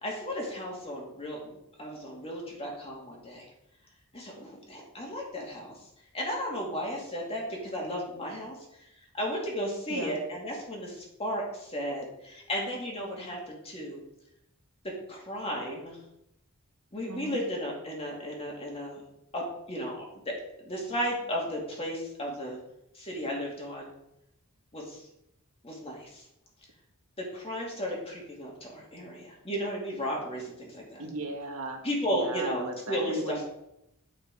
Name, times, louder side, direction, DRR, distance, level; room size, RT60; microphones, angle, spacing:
voice 1, 0.0-3.5 4.1-5.7 6.1-8.6 9.2-14.0 15.1-16.0 16.9-19.0 19.3-20.3 20.7-22.6 22.9-23.9 24.7-25.0 25.6-26.2 27.2-31.0 31.8-33.4, equal, 25° left, -2 dB, 2.4 m, -34 dB
voice 2, 17.1-17.4 31.0-33.4, right 2 dB, 75° right, 2 dB, 1.7 m, -37 dB
10.0 x 5.9 x 4.8 m, 0.82 s
head